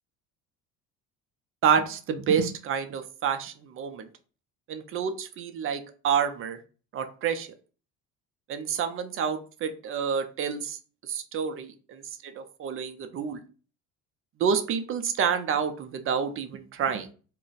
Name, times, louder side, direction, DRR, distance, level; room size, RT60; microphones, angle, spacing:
voice 1, 1.6-4.1 4.7-6.6 6.9-7.5 8.5-13.4 14.4-17.1, right 7 dB, 40° right, 8 dB, 0.5 m, -28 dB
2.4 x 2.2 x 3.9 m, 0.38 s
cardioid pair, 110°, 32 cm